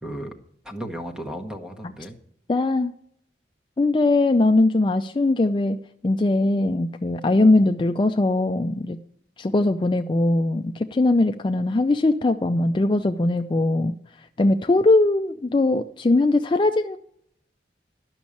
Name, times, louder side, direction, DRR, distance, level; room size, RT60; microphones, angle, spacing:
voice 1, 0.0-0.3 0.6-2.2, equal, 5° right, 6 dB, 1.1 m, -35 dB
voice 2, 2.5-2.9 3.8-5.8 6.0-9.0 9.4-14.0 14.4-17.0, left 2 dB, 25° left, 7 dB, 0.4 m, -20 dB
12.0 x 6.2 x 8.4 m, 0.69 s
head